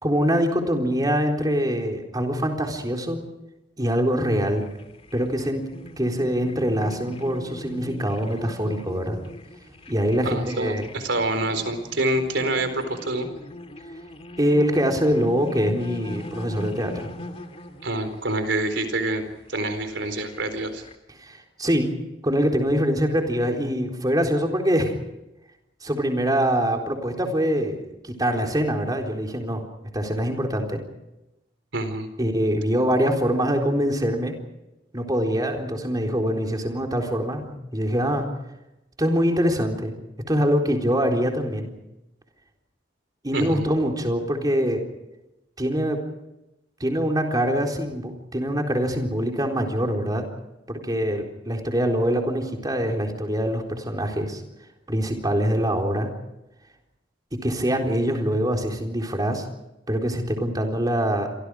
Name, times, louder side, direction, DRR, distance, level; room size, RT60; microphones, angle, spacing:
voice 1, 0.0-3.2 3.8-4.6 5.1-5.6 6.0-9.2 9.9-10.9 14.4-17.1 21.2-21.9 22.2-24.9 25.8-29.7 29.9-30.8 32.2-34.4 34.9-38.3 39.0-40.0 40.3-41.8 43.2-44.8 45.6-46.0 46.8-50.3 50.7-54.4 54.9-56.1 57.4-59.4 59.9-61.3, equal, 20° right, 2 dB, 4.0 m, -24 dB
sound 1, 4.3-20.9, left 1 dB, 35° left, 2.5 m, -41 dB
voice 2, 10.2-13.3 17.8-19.2 19.5-20.8 31.7-32.1 43.3-43.6, right 2 dB, 75° right, 8 dB, 4.3 m, -26 dB
28.0 x 24.5 x 5.0 m, 0.93 s
head